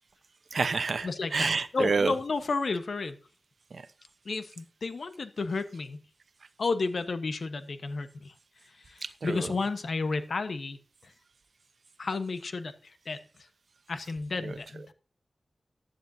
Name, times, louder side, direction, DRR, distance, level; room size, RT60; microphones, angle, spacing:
voice 1, 0.5-2.1 3.7-3.9 9.0-9.5 14.4-14.6, right 4 dB, 75° right, 12 dB, 0.8 m, -29 dB
voice 2, 1.0-3.2 4.2-6.0 6.6-8.3 8.9-10.8 11.0-11.1 12.0-12.7 13.1-13.2 13.9-14.8, left 3 dB, 75° left, 10 dB, 1.1 m, -32 dB
15.0 x 10.5 x 2.7 m, 0.39 s
wide cardioid pair, 85°, 0 cm